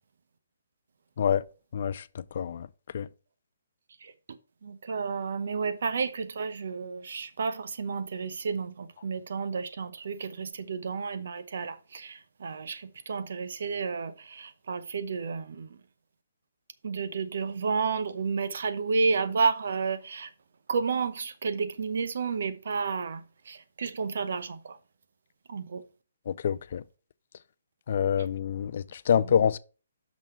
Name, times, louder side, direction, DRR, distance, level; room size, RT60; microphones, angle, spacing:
voice 1, 1.7-2.0 2.3-2.7 2.9-3.1 26.3-26.8 27.9-29.6, left 8 dB, 55° left, 0.4 m, -26 dB
voice 2, 4.6-15.8 16.8-20.3 20.7-24.8 25.5-25.8 29.1-29.5, right 5 dB, 65° right, 0.8 m, -31 dB
6.1 x 5.4 x 4.5 m
hypercardioid pair, 150°, 0 cm